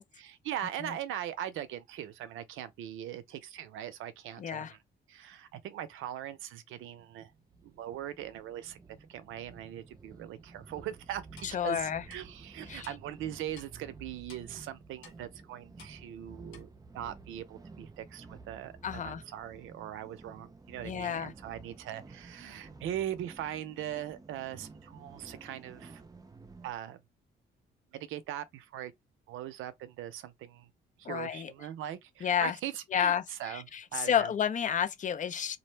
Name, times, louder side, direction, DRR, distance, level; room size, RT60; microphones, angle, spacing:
voice 1, 0.0-4.8 5.1-7.3 7.6-11.2 11.6-16.7 16.9-26.0 26.6-27.0 27.9-28.9 29.3-30.7 31.0-34.3, right 11 dB, 85° right, 0.5 m, -40 dB
voice 2, 4.4-4.7 11.4-12.0 12.7-12.9 18.8-19.2 20.8-21.3 31.0-31.5 32.2-32.5 32.9-35.6, left 9 dB, 40° left, 0.4 m, -31 dB
sound 1, 7.3-26.8, right 3 dB, 20° right, 0.5 m, -52 dB
Clock, 11.4-11.5 12.1-12.2 12.8-12.9 13.5-13.7 14.3-14.4 15.0-15.2 15.8-15.9 16.5-16.6, left 6 dB, 85° left, 1.0 m, -52 dB
2.5 x 2.1 x 3.1 m
cardioid pair, 90°, 20 cm